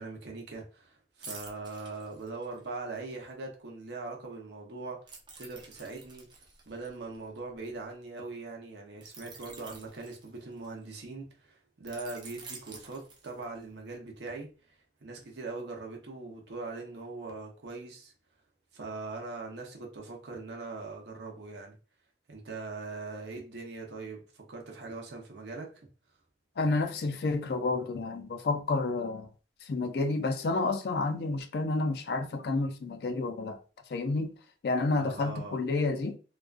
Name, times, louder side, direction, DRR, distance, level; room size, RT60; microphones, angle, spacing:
voice 1, 0.0-6.3 6.7-14.7 15.0-18.1 18.7-21.8 22.3-25.9 34.9-35.6, right 3 dB, 70° right, 0.7 m, -41 dB
sound 1, 1.2-2.8 5.1-7.8 9.0-10.8 11.9-13.7 14.1-14.3, right 4 dB, 25° right, 0.4 m, -49 dB
voice 2, 26.6-29.3 29.6-33.6 33.9-34.3 34.6-36.2, left 3 dB, 60° left, 0.3 m, -30 dB
2.4 x 2.2 x 2.4 m
head